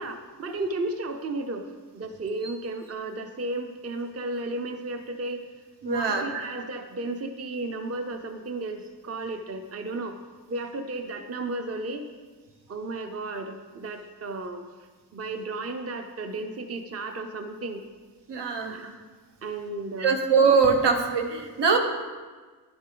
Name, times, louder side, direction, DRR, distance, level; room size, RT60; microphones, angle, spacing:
voice 1, 0.0-1.7 1.9-5.4 5.8-10.2 10.5-12.1 12.7-14.6 15.1-17.8 18.7-19.0 19.4-20.1, right 2 dB, 35° right, 6 dB, 0.6 m, -33 dB
voice 2, 5.8-6.2 18.3-18.7 20.0-21.8, right 5 dB, 85° right, 4 dB, 1.2 m, -22 dB
10.0 x 7.9 x 3.8 m, 1.4 s
wide cardioid pair, 135°, 41 cm